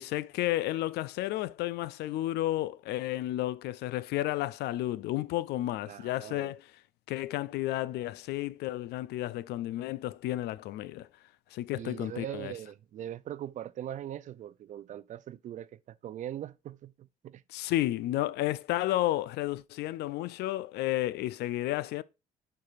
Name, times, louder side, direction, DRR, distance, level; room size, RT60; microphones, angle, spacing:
voice 1, 0.0-6.7 7.1-11.1 11.5-12.5 17.5-22.0, left 15 dB, 75° left, 0.4 m, -32 dB
voice 2, 5.9-6.5 11.7-17.4, right 11 dB, 50° right, 0.4 m, -41 dB
8.4 x 4.7 x 2.5 m
cardioid pair, 110°, 17 cm